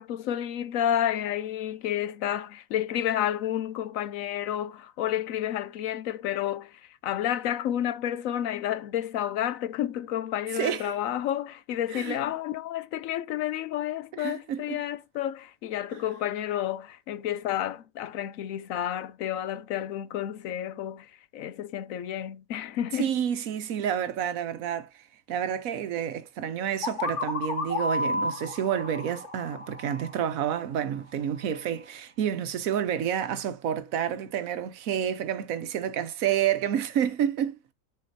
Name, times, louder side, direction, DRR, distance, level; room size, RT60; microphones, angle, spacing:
voice 1, 0.0-23.1, left 11 dB, 75° left, 1.0 m, -30 dB
voice 2, 10.5-10.9 11.9-12.2 14.1-14.8 15.9-16.0 22.9-37.7, right 9 dB, 80° right, 1.2 m, -29 dB
sound 1, 26.8-30.6, left 2 dB, 60° left, 1.8 m, -32 dB
10.0 x 4.2 x 2.7 m
omnidirectional pair, 1.4 m